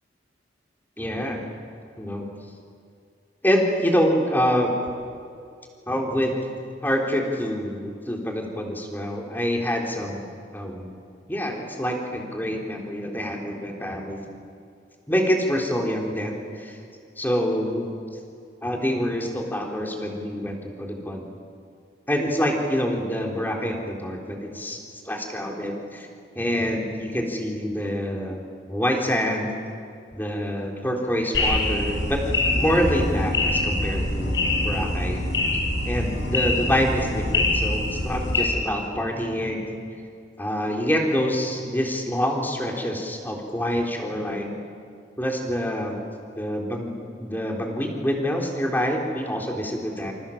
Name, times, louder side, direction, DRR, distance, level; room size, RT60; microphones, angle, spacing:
voice 1, 1.0-1.4 2.0-2.3 3.4-4.7 5.9-6.3 6.8-10.2 10.5-10.9 11.3-14.2 15.1-16.8 17.2-17.9 18.6-21.3 22.1-24.8 25.0-26.1 26.4-29.5 30.1-32.2 32.5-35.2 35.8-39.7 40.4-44.6 45.2-46.0 46.4-50.1, equal, 10° left, 0 dB, 3.9 m, -26 dB
sound 1, 31.3-38.4, left 2 dB, 80° left, 6.0 m, -24 dB
28.0 x 27.0 x 7.3 m, 2.4 s
head